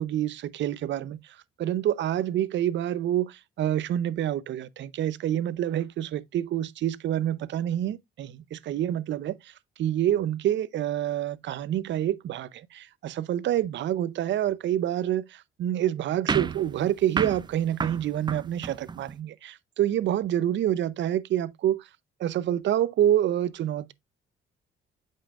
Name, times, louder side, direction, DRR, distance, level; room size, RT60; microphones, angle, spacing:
voice 1, 0.0-21.9 22.2-23.9, right 11 dB, 70° right, 0.6 m, -27 dB
sound 1, 16.3-19.2, right 5 dB, 20° right, 0.4 m, -32 dB
8.3 x 5.6 x 2.4 m
cardioid pair, 90°, 20 cm